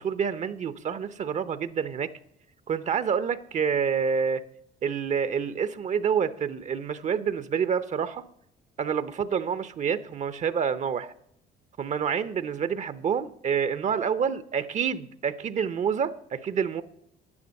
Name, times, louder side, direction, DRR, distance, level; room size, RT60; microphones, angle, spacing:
voice 1, 0.0-2.1 2.7-4.4 4.8-8.2 8.8-11.1 11.8-16.8, right 7 dB, 45° right, 0.6 m, -28 dB
10.0 x 9.7 x 6.4 m
cardioid pair, 110°, 17 cm